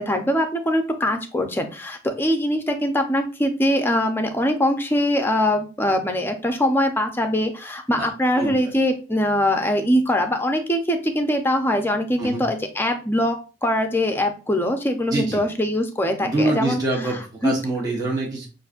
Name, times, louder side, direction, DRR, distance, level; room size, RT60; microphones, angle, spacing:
voice 1, 0.0-16.8 17.4-17.5, left 1 dB, 10° left, 5 dB, 0.6 m, -22 dB
voice 2, 8.4-8.7 12.2-12.4 15.1-15.4 16.2-18.5, right 2 dB, 20° right, -3 dB, 1.0 m, -25 dB
6.4 x 2.5 x 2.4 m, 0.34 s
head